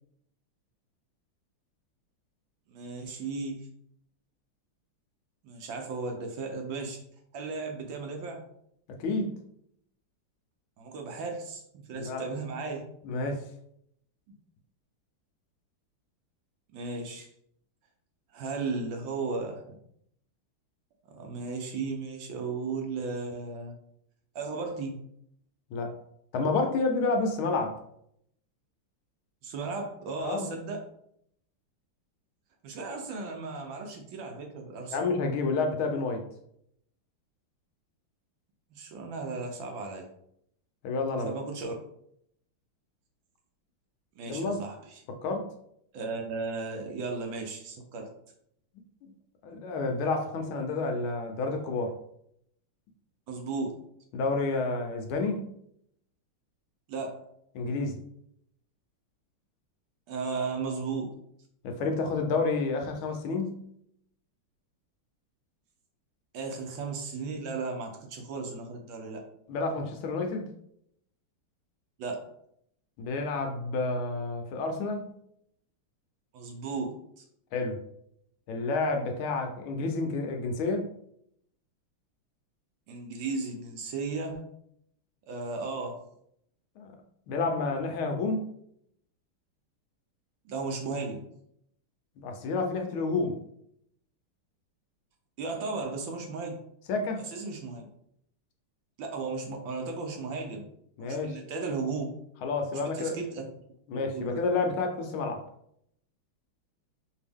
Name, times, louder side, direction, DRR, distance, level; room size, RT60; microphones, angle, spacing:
voice 1, 2.7-3.7 5.4-7.0 7.3-8.5 10.8-12.8 14.3-14.4 16.7-17.3 18.3-19.8 21.1-23.7 24.3-25.0 29.4-30.9 32.6-35.0 38.7-40.1 41.3-41.7 44.2-45.0 45.9-48.1 53.3-53.7 56.9-57.2 60.1-61.1 66.3-69.2 72.0-72.3 76.3-77.0 82.9-84.5 85.3-86.0 90.4-91.3 95.4-96.6 97.2-97.9 99.0-100.7 101.0-102.1 102.9-103.4 104.1-104.4, right 4 dB, 70° right, 2 dB, 1.3 m, -35 dB
voice 2, 9.0-9.3 11.9-12.2 13.0-13.4 25.7-25.9 26.3-27.8 30.2-30.5 34.9-36.2 40.8-41.3 44.3-44.6 45.2-45.5 49.4-51.9 54.1-55.5 57.5-58.0 61.6-63.6 69.5-70.5 73.0-75.1 77.5-77.8 78.5-80.9 86.8-86.9 87.3-88.5 92.2-93.4 96.9-97.2 101.0-101.4 102.4-103.2 103.9-105.4, left 3 dB, 75° left, 4 dB, 1.5 m, -29 dB
5.0 x 2.7 x 3.5 m, 0.71 s
omnidirectional pair, 2.4 m